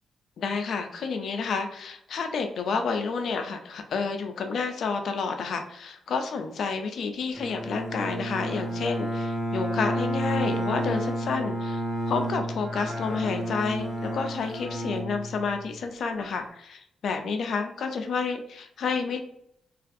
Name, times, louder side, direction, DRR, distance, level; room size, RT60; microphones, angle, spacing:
voice 1, 0.4-11.8 12.1-19.2, left 5 dB, 55° left, 6 dB, 0.3 m, -30 dB
Bowed string instrument, 7.3-15.8, right 1 dB, 35° right, 0.9 m, -31 dB
2.5 x 2.3 x 2.5 m, 0.72 s
wide cardioid pair, 175°, 0 cm